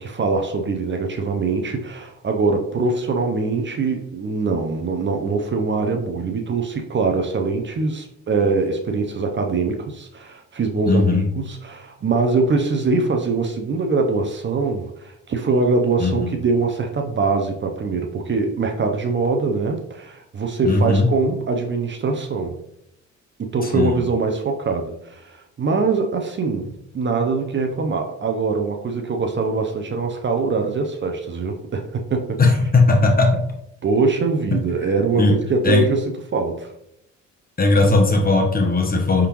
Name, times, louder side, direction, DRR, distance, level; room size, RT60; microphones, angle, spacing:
voice 1, 0.0-22.6 23.4-32.6 33.8-36.7, right 4 dB, 40° right, 4 dB, 0.6 m, -23 dB
voice 2, 10.9-11.2 16.0-16.3 20.6-21.1 23.6-24.0 32.4-33.4 35.2-35.3 35.6-35.8 37.6-39.3, left 3 dB, 30° left, 2 dB, 1.1 m, -17 dB
4.8 x 3.7 x 3.0 m, 0.77 s
cardioid pair, 90°, 30 cm